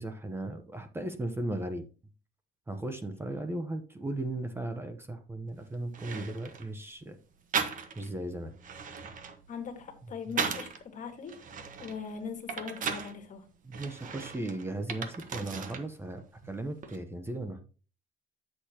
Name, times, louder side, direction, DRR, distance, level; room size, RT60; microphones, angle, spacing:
voice 1, 0.0-1.9 2.7-7.2 8.0-8.5 13.6-17.6, right 1 dB, 15° right, 8 dB, 0.9 m, -36 dB
sound 1, 5.5-5.6 5.9-6.7 7.5-8.2 8.5-10.8 11.3-13.1 13.7-15.9 16.2-17.0, right 6 dB, 50° right, 1.3 m, -37 dB
voice 2, 9.5-11.4 11.8-13.4, left 6 dB, 50° left, 6 dB, 1.7 m, -40 dB
9.7 x 6.7 x 2.9 m, 0.37 s
cardioid pair, 110°, 17 cm